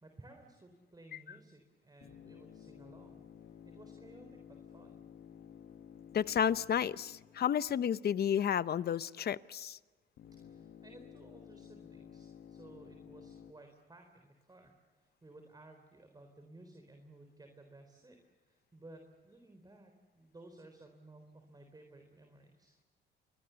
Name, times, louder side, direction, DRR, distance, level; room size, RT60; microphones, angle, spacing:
voice 1, 0.0-3.2 3.6-5.0 10.4-22.8, right 2 dB, 20° right, 4 dB, 3.9 m, -57 dB
sound 1, 2.0-8.3 10.2-13.5, left 9 dB, 70° left, 1.5 m, -54 dB
voice 2, 6.1-9.8, left 9 dB, 55° left, 16 dB, 0.8 m, -31 dB
29.0 x 23.0 x 7.0 m, 1.3 s
cardioid pair, 90°, 20 cm